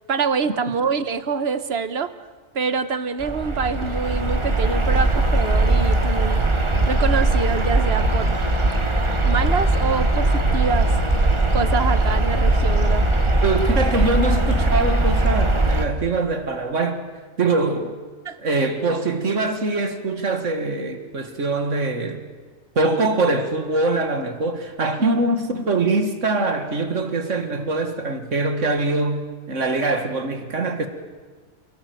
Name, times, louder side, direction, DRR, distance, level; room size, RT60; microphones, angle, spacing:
voice 1, 0.1-2.1 2.5-6.4 6.8-8.3 9.2-10.9 11.5-13.1 18.2-18.4 25.0-25.4, right 5 dB, 60° right, 1.3 m, -25 dB
sound 1, 3.2-15.8, right 2 dB, 25° right, 1.5 m, -20 dB
voice 2, 13.4-17.0 17.4-18.0 18.4-22.2 22.8-30.9, right 2 dB, 85° right, 2.3 m, -23 dB
28.0 x 17.5 x 7.9 m
omnidirectional pair, 1.2 m